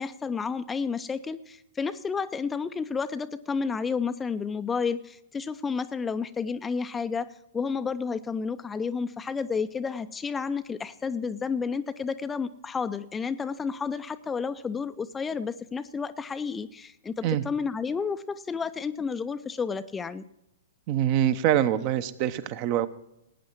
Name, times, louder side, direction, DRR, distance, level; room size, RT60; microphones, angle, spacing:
voice 1, 0.0-20.2, left 5 dB, 15° left, 11 dB, 0.5 m, -31 dB
voice 2, 20.9-22.9, right 11 dB, 35° right, 13 dB, 0.8 m, -24 dB
18.0 x 9.4 x 4.6 m, 0.82 s
figure-of-eight pair, 110°, 0 cm